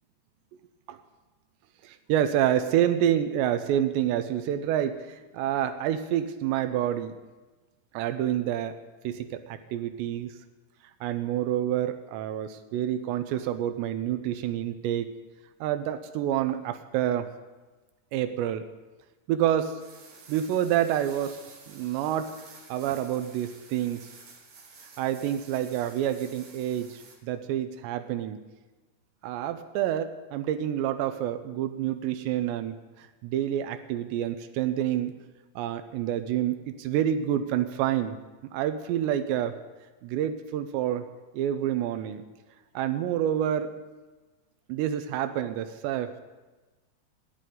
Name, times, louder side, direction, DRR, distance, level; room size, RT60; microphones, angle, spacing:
voice 1, 1.8-7.1 7.9-8.8 9.0-10.3 11.0-15.1 15.6-17.3 18.1-18.7 19.3-19.8 20.3-21.4 21.7-22.3 22.7-24.1 25.0-28.4 29.2-35.1 35.6-38.2 38.5-39.6 40.0-41.1 41.3-42.2 42.7-43.7 44.7-46.2, right 11 dB, 90° right, 9 dB, 3.0 m, -28 dB
sound 1, 19.8-27.2, right 4 dB, 55° right, 3.4 m, -51 dB
27.5 x 11.0 x 3.9 m, 1.2 s
omnidirectional pair, 5.0 m